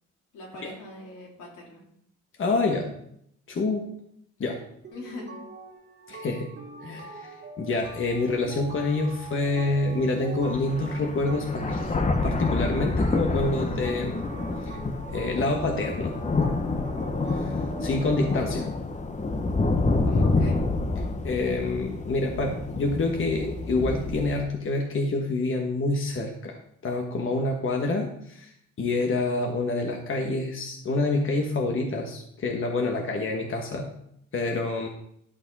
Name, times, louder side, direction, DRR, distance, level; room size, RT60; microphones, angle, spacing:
voice 1, 0.3-1.8 4.9-5.3 20.0-20.6, left 2 dB, 85° left, -3 dB, 3.2 m, -41 dB
voice 2, 2.4-2.9 3.5-3.9 4.4-4.6 6.1-6.5 6.8-7.3 7.6-11.9 12.2-14.2 14.6-14.8 15.1-16.1 17.3-18.7 21.2-28.5 28.8-33.9 34.3-34.9, left 2 dB, 45° left, 1 dB, 1.3 m, -27 dB
sound 1, 4.8-18.6, right 4 dB, 35° right, 1.2 m, -43 dB
sound 2, 7.9-8.0 8.6-8.7 10.0-10.1 10.4-24.4, left 3 dB, 25° left, 0.9 m, -28 dB
11.5 x 5.4 x 4.1 m, 0.71 s
cardioid pair, 90°, 30 cm